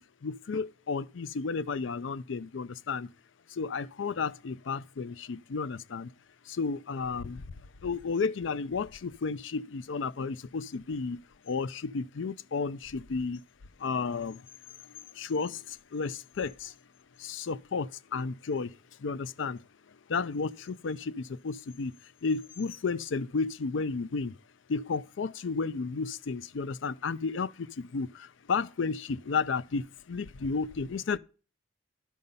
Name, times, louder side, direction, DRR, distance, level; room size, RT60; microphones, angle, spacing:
voice 1, 0.2-3.1 3.6-6.1 6.6-7.4 7.8-11.2 11.5-13.4 13.8-14.4 15.2-15.6 15.9-16.7 17.2-18.7 19.0-19.6 20.1-21.9 22.2-24.3 24.7-28.1 28.5-31.2, left 4 dB, 70° left, 0.5 m, -32 dB
12.0 x 5.4 x 5.4 m
head